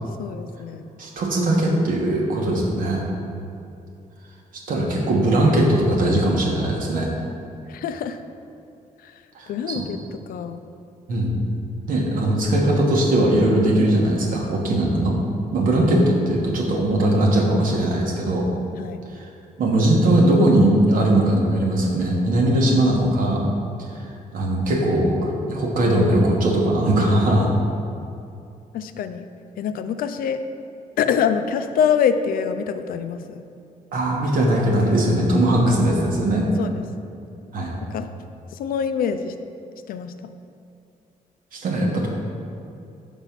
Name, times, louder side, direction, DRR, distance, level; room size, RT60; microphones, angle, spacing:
voice 1, 0.2-0.8 7.7-8.2 9.0-9.1 9.5-10.0 10.3-10.6 18.8-19.0 28.7-29.2 29.6-30.4 31.0-33.4 36.6-36.8 37.9-38.1 38.5-39.3 39.9-40.1, left 7 dB, 80° left, 9 dB, 0.4 m, -24 dB
voice 2, 1.0-3.0 4.7-7.1 9.3-9.8 11.1-11.4 11.9-15.2 15.5-18.4 19.1-19.2 19.6-23.4 24.3-27.5 33.9-36.4 37.5-37.7 41.5-42.1, right 1 dB, 70° right, -1 dB, 1.2 m, -20 dB
5.4 x 4.1 x 5.8 m, 2.6 s
cardioid pair, 90°, 15 cm